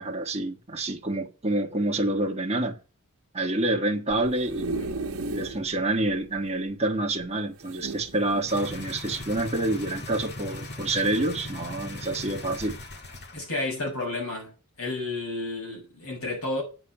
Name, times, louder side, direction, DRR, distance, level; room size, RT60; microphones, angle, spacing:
voice 1, 0.0-2.8 3.3-4.8 5.3-12.8, right 2 dB, 30° right, 1.4 m, -27 dB
sound 1, 4.1-5.6 6.1-6.2 6.4-6.5 7.6-8.5 9.2-9.4, right 2 dB, 80° right, 1.3 m, -34 dB
sound 2, 8.5-13.5 13.8-13.9, left 1 dB, 50° left, 1.8 m, -38 dB
voice 2, 13.3-14.5 14.8-16.6, left 2 dB, 75° left, 7.1 m, -31 dB
8.7 x 6.1 x 7.9 m
head